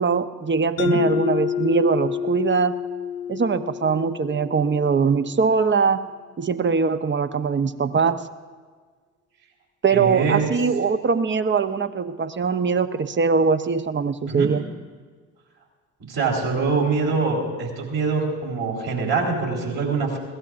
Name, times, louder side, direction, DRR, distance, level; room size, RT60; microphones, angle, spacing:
voice 1, 0.0-2.7 3.3-6.0 6.4-8.2 9.8-14.6, right 5 dB, 25° right, 11 dB, 0.9 m, -22 dB
Mallet percussion, 0.8-5.3, left 9 dB, 85° left, 0.5 m, -28 dB
voice 2, 9.9-10.5 14.3-14.5 16.1-20.2, right 4 dB, 60° right, -1 dB, 4.4 m, -24 dB
21.5 x 17.5 x 2.6 m, 1.5 s
hypercardioid pair, 50°, 42 cm